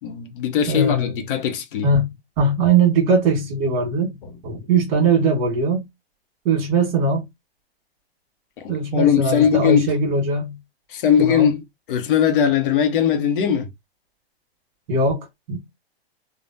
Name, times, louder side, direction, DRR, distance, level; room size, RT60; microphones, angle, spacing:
voice 1, 0.0-1.9 4.2-4.3 8.6-9.9 10.9-13.7, left 8 dB, 55° left, 0.7 m, -20 dB
voice 2, 0.7-1.1 1.8-2.1 2.4-4.1 4.4-5.9 6.4-7.2 8.7-10.6 11.2-11.5 14.9-15.6, right 3 dB, 45° right, 1.6 m, -20 dB
3.4 x 2.1 x 2.6 m
hypercardioid pair, 145°, 31 cm